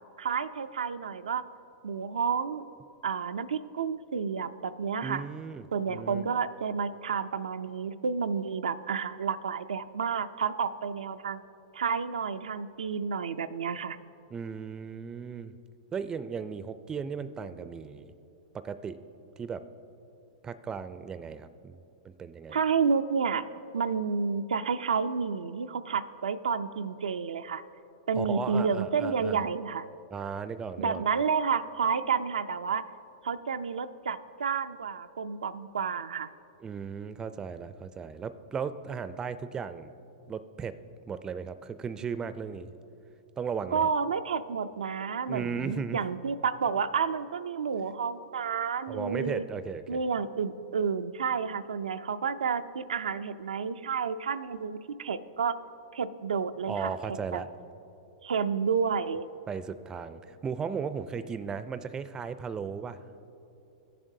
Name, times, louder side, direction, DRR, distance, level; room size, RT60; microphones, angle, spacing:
voice 1, 0.2-1.4 1.8-2.7 3.0-5.2 5.7-11.4 11.7-14.0 22.5-23.5 23.7-27.6 28.1-29.9 30.8-32.8 33.2-36.3 43.7-49.4 49.9-55.6 55.9-56.9 57.3-57.4 58.2-59.3, right 6 dB, 90° right, 9 dB, 0.3 m, -30 dB
voice 2, 5.0-6.3 14.3-15.5 15.9-18.1 18.5-19.0 19.4-19.6 20.4-21.8 22.0-22.6 28.1-29.4 30.1-31.0 36.6-39.9 40.3-40.8 41.1-42.7 43.4-43.9 45.3-46.0 48.9-50.0 56.7-57.5 59.5-63.0, right 6 dB, 20° right, 12 dB, 0.4 m, -36 dB
16.5 x 7.4 x 2.7 m, 2.8 s
hypercardioid pair, 120°, 4 cm